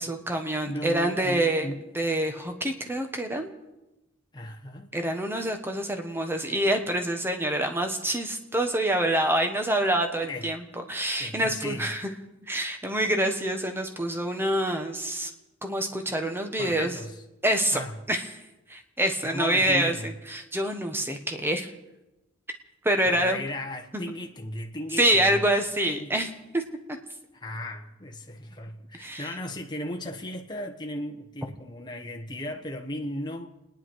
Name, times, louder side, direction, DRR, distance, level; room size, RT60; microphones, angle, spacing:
voice 1, 0.0-3.5 4.9-10.6 10.9-12.1 12.4-15.3 15.6-17.0 17.4-17.8 18.1-18.3 18.7-19.9 20.3-21.7 22.8-23.4 23.9-24.0 25.0-26.6 29.0-29.3, right 1 dB, 10° right, 1.4 m, -26 dB
voice 2, 0.7-1.8 4.3-4.9 10.2-10.5 11.2-11.9 16.6-17.2 17.7-17.9 19.2-20.1 23.0-25.4 25.9-26.1 27.3-33.5, left 1 dB, 20° left, 1.2 m, -36 dB
30.0 x 10.5 x 4.7 m
head